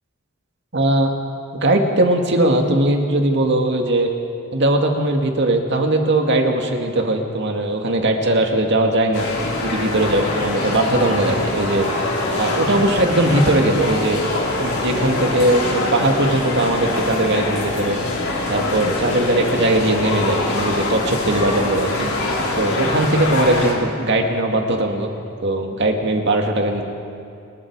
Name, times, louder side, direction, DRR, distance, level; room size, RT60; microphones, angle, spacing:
voice 1, 0.7-1.1 1.5-4.1 4.5-9.3 9.6-11.9 12.3-14.2 14.6-18.0 18.5-22.1 22.6-25.1 25.4-26.8, right 1 dB, 55° right, 2 dB, 2.2 m, -19 dB
sound 1, 9.1-23.7, left 2 dB, 75° left, 4.8 m, -23 dB
28.5 x 21.0 x 4.8 m, 2.5 s
head